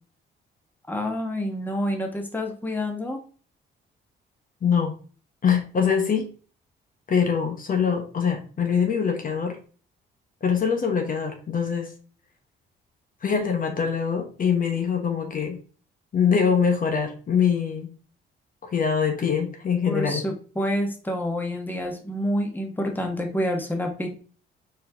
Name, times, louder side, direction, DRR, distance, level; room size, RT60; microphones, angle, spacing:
voice 1, 0.9-3.2 19.9-24.1, equal, 10° left, 2 dB, 1.3 m, -28 dB
voice 2, 4.6-4.9 5.4-6.3 7.1-9.6 10.4-11.9 13.2-15.6 16.1-17.9 18.7-20.2, left 6 dB, 45° left, 3 dB, 1.1 m, -23 dB
4.4 x 4.3 x 2.8 m, 0.39 s
cardioid pair, 90°, 20 cm